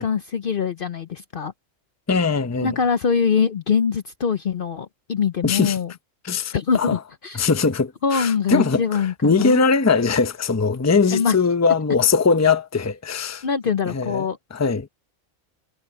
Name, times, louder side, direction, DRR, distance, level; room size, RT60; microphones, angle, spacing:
voice 1, 0.0-1.5 2.6-5.9 6.5-7.5 8.0-9.6 11.1-11.4 13.4-14.4, left 6 dB, 50° left, 0.8 m, -23 dB
voice 2, 2.1-2.8 5.4-5.8 6.2-7.0 7.3-13.4 13.9-14.3 14.5-14.9, left 4 dB, 15° left, 0.7 m, -21 dB
omnidirectional pair, 1.3 m